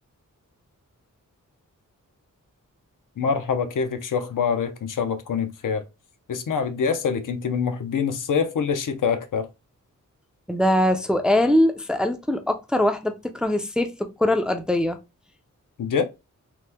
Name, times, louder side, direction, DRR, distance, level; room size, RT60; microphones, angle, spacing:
voice 1, 3.2-5.8 6.3-9.5 15.8-16.0, left 6 dB, 75° left, 0.6 m, -25 dB
voice 2, 10.5-15.0, left 1 dB, 5° right, 0.4 m, -22 dB
3.0 x 2.1 x 3.3 m
wide cardioid pair, 95°, 32 cm